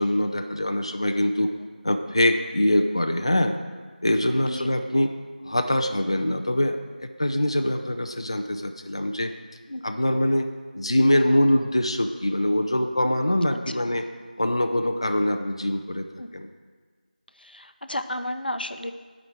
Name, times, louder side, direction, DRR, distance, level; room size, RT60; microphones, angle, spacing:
voice 1, 0.0-1.5 1.8-3.6 4.0-5.1 5.4-9.3 9.8-10.5 10.7-14.0 14.4-16.1 16.3-16.5, left 1 dB, 35° left, 6 dB, 0.4 m, -23 dB
voice 2, 16.2-16.5 17.4-18.9, left 1 dB, 85° left, 9 dB, 0.6 m, -32 dB
7.7 x 5.0 x 7.3 m, 1.5 s
figure-of-eight pair, 175°, 5 cm